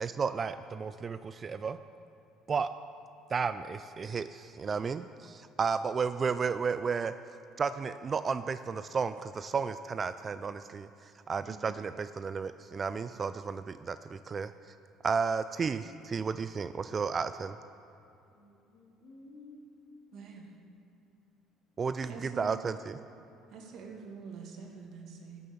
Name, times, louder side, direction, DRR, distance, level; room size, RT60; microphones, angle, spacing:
voice 1, 0.0-1.8 2.5-2.7 3.3-7.1 7.6-14.5 15.0-17.5 21.8-23.0, right 5 dB, 35° right, 12 dB, 0.3 m, -33 dB
voice 2, 11.2-11.6 18.3-20.3, left 2 dB, 55° left, -2 dB, 2.6 m, -54 dB
voice 3, 20.1-20.5 22.1-22.5 23.5-25.4, right 5 dB, 60° right, 2 dB, 1.7 m, -45 dB
12.5 x 6.4 x 7.0 m, 2.8 s
supercardioid pair, 90°, 0 cm